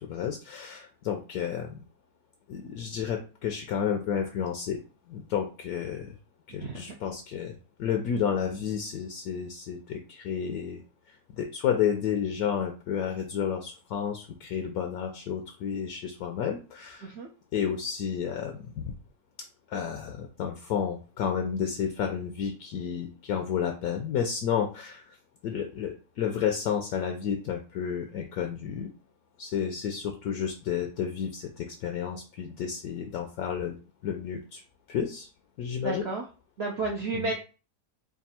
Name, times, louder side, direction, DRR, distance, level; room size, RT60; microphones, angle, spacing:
voice 1, 0.0-1.8 2.5-4.8 5.1-6.2 6.5-10.8 11.1-17.1 17.5-18.9 19.7-25.2 25.4-28.9 29.4-33.8 34.0-34.6 34.9-35.3 35.6-36.1 37.1-37.3, left 8 dB, 70° left, 4 dB, 1.0 m, -31 dB
voice 2, 6.6-6.9 17.0-17.3 35.8-36.2 36.6-37.3, right 3 dB, 70° right, 0 dB, 0.6 m, -32 dB
3.5 x 2.4 x 4.1 m, 0.35 s
omnidirectional pair, 1.7 m